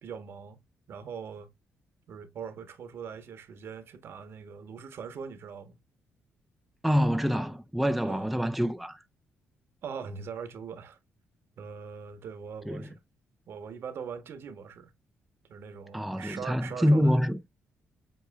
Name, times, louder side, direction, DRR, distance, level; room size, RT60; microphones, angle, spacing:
voice 1, 0.0-0.6 0.9-1.5 2.1-5.8 8.0-8.3 9.8-11.0 11.6-13.0 13.5-14.9 15.5-17.3, right 6 dB, 60° right, 1.1 m, -41 dB
voice 2, 6.8-9.0 12.7-12.9 15.9-17.4, equal, ahead, 0.4 m, -26 dB
7.7 x 2.7 x 2.3 m
cardioid pair, 110°, 5 cm